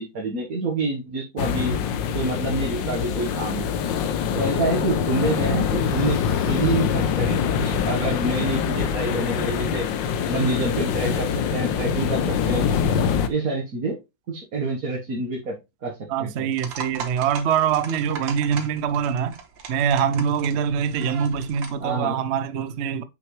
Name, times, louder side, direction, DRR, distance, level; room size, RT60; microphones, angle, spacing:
voice 1, 0.0-1.7 2.1-3.8 4.3-6.2 6.5-9.9 10.3-12.7 13.3-14.0 14.3-15.6 15.8-16.5 21.8-22.2, right 2 dB, 50° right, 1.8 m, -27 dB
sound 1, 1.4-13.3, left 7 dB, 80° left, 1.4 m, -24 dB
voice 2, 16.1-19.4 19.7-23.0, right 7 dB, 70° right, 0.6 m, -24 dB
sound 2, 16.5-21.9, right 6 dB, 90° right, 1.9 m, -38 dB
7.0 x 5.9 x 3.2 m
omnidirectional pair, 2.0 m